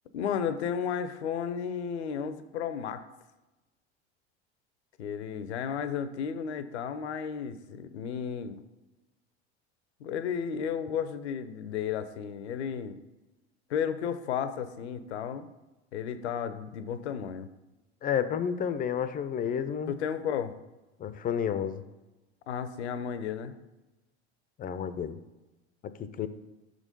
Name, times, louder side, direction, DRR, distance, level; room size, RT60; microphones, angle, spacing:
voice 1, 0.1-3.0 5.0-8.6 10.0-13.0 13.7-15.5 15.9-17.5 19.9-20.5 22.5-23.5, left 7 dB, 80° left, 12 dB, 0.6 m, -33 dB
voice 2, 18.0-19.9 21.0-21.8 24.6-25.2 25.8-26.3, left 8 dB, 25° left, 12 dB, 0.4 m, -31 dB
6.0 x 3.8 x 5.2 m, 1.1 s
hypercardioid pair, 80°, 33 cm